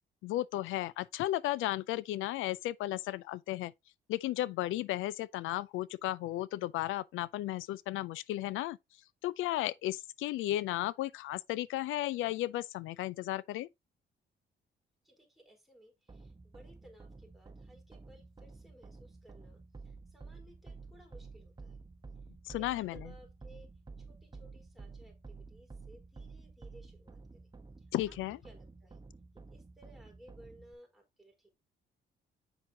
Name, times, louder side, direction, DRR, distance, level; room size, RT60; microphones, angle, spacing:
voice 1, 0.2-3.7 4.1-8.8 9.2-13.7 22.4-23.0 27.9-28.4, left 15 dB, 85° left, 0.4 m, -34 dB
voice 2, 15.0-21.8 22.5-23.7 24.0-27.4 27.8-28.2 28.4-29.0 29.5-31.5, equal, ahead, 4.1 m, -59 dB
sound 1, 16.1-30.7, right 4 dB, 20° right, 1.1 m, -51 dB
8.0 x 5.8 x 2.8 m
cardioid pair, 90°, 20 cm